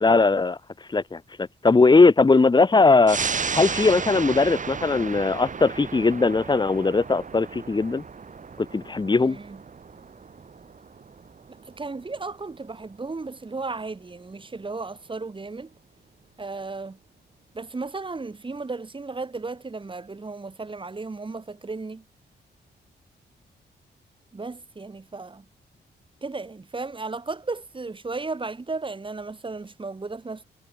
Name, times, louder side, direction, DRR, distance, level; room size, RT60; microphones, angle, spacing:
voice 1, 0.0-0.6 0.9-3.2 3.5-8.0 8.6-9.4, left 3 dB, 25° left, 1.2 m, -19 dB
sound 1, 3.1-14.0 14.4-14.5, right 5 dB, 45° right, 5.9 m, -34 dB
voice 2, 9.1-9.6 11.5-15.7 16.4-17.0 17.5-22.0 24.3-25.5 26.2-30.4, right 3 dB, 25° right, 7.2 m, -35 dB
cardioid pair, 105°, 18 cm